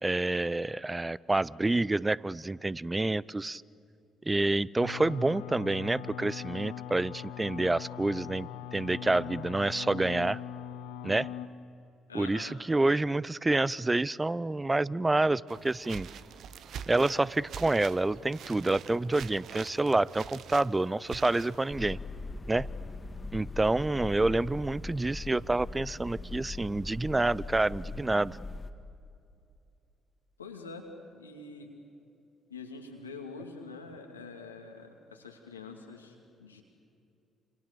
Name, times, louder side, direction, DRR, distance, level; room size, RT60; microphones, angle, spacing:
voice 1, 0.0-3.6 4.3-10.4 11.0-11.3 12.1-16.1 16.9-22.0 22.5-22.7 23.3-28.4, right 2 dB, 20° right, 22 dB, 0.6 m, -28 dB
sound 1, 4.8-11.5, left 10 dB, 70° left, 1.2 m, -41 dB
voice 2, 12.1-12.6 30.4-30.9 31.1-31.7 32.5-36.6, left 4 dB, 85° left, 2 dB, 2.4 m, -45 dB
sound 2, 15.5-21.9, right 8 dB, 55° right, 1.0 m, -45 dB
sound 3, 21.7-28.7, left 3 dB, 25° left, 2.1 m, -40 dB
28.5 x 28.5 x 6.9 m, 2.6 s
figure-of-eight pair, 45°, 0 cm